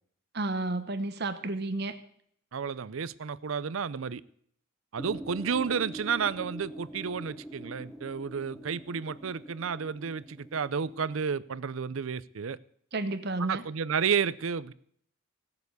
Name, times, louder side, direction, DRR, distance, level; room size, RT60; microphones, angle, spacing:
voice 1, 0.3-2.0 12.9-13.6, right 2 dB, 50° right, 0.9 m, -31 dB
voice 2, 2.5-4.2 4.9-12.6 13.4-14.7, right 6 dB, 75° right, 0.5 m, -31 dB
sound 1, 5.0-11.2, right 1 dB, ahead, 0.8 m, -44 dB
16.5 x 6.9 x 8.1 m
head